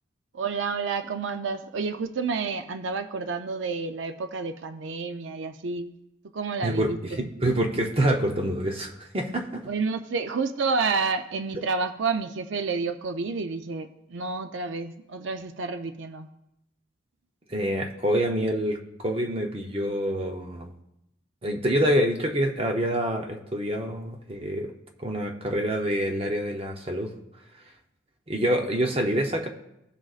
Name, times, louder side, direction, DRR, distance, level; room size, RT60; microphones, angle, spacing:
voice 1, 0.3-5.9 6.3-7.3 9.7-16.3, right 4 dB, 70° right, 8 dB, 0.5 m, -30 dB
voice 2, 6.6-9.7 17.5-20.7 21.4-24.7 25.0-27.1 28.3-29.5, equal, 30° right, 2 dB, 0.7 m, -26 dB
16.0 x 6.2 x 2.4 m, 0.86 s
head